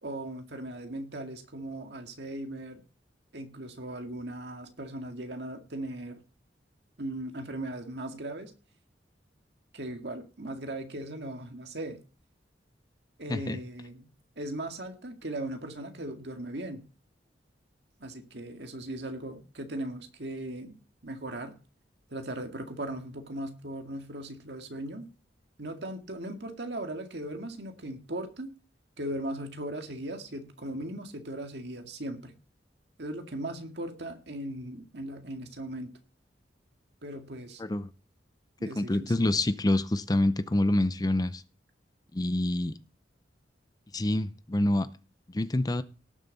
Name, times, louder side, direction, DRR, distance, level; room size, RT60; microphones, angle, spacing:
voice 1, 0.0-2.8 3.3-6.2 7.0-8.5 9.7-12.0 13.2-14.1 14.4-16.9 18.0-21.6 22.1-25.1 25.6-28.5 29.0-32.4 33.0-35.9 37.0-37.6 38.6-39.3, right 1 dB, 65° right, 2.0 m, -38 dB
voice 2, 37.6-37.9 38.6-41.4 42.1-42.7 43.9-44.9 45.3-45.8, left 1 dB, 20° left, 0.5 m, -27 dB
18.5 x 7.1 x 4.1 m
head